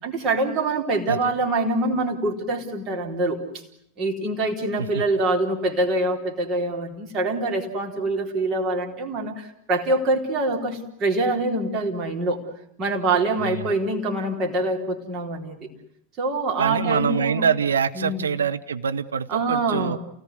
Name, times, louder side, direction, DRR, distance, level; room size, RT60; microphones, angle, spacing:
voice 1, 0.0-3.4 4.0-12.4 12.8-15.7 16.2-17.4 18.0-18.2 19.3-20.0, right 2 dB, 30° right, 1 dB, 4.0 m, -25 dB
voice 2, 13.4-13.7 16.6-20.0, right 7 dB, 70° right, 9 dB, 1.0 m, -25 dB
28.5 x 18.0 x 9.6 m, 0.75 s
figure-of-eight pair, 90°, 0 cm